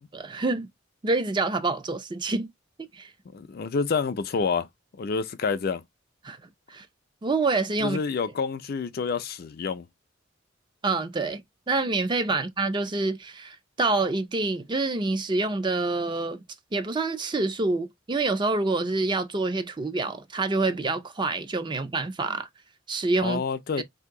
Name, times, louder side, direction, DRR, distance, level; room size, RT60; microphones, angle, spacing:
voice 1, 0.1-0.7 1.0-2.5 2.9-3.1 6.2-6.4 6.7-6.9 7.2-8.0 10.8-16.4 16.7-22.5 22.9-23.4 23.8-23.9, right 3 dB, 25° right, 0.4 m, -27 dB
voice 2, 3.3-4.7 5.0-5.8 7.8-9.9 23.2-23.8, left 5 dB, 50° left, 0.4 m, -28 dB
2.8 x 2.6 x 3.5 m
head